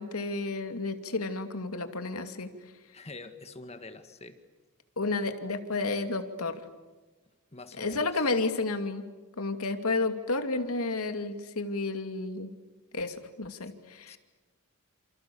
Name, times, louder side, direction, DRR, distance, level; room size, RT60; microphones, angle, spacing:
voice 1, 0.0-2.5 5.0-6.6 7.8-9.0 9.4-12.5 12.9-14.2, left 3 dB, 80° left, 7 dB, 2.5 m, -31 dB
voice 2, 2.9-4.4 7.5-8.1 13.6-13.7 14.1-14.2, left 3 dB, 30° left, 8 dB, 1.8 m, -45 dB
29.0 x 28.5 x 7.1 m, 1.2 s
head